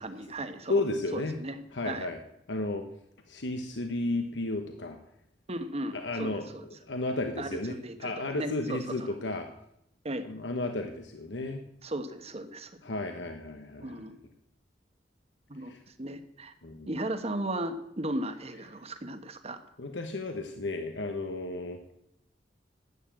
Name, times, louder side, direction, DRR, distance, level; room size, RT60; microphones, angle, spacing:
voice 1, 0.0-0.8 1.1-2.1 5.5-6.7 7.4-9.1 10.0-10.3 11.8-12.8 13.8-14.2 15.5-16.5 16.9-19.6, right 1 dB, 35° right, 9 dB, 1.2 m, -36 dB
voice 2, 0.7-1.3 1.7-2.2 2.5-2.8 3.3-5.0 5.9-6.4 6.9-9.5 10.3-11.6 12.8-13.9 15.7-15.8 16.6-16.9 19.8-22.0, left 2 dB, 90° left, 5 dB, 1.1 m, -33 dB
11.5 x 9.3 x 7.5 m, 0.79 s
head